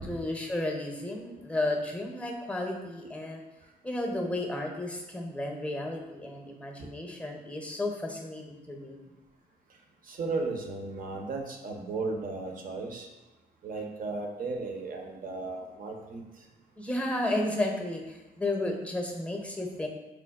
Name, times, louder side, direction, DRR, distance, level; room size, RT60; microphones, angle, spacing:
voice 1, 0.0-3.4 3.8-9.0 16.8-19.9, left 1 dB, 5° left, 2 dB, 0.7 m, -33 dB
voice 2, 10.0-13.1 13.6-16.5, right 3 dB, 50° right, 2 dB, 0.7 m, -35 dB
4.4 x 2.2 x 2.3 m, 1.1 s
supercardioid pair, 60°, 18 cm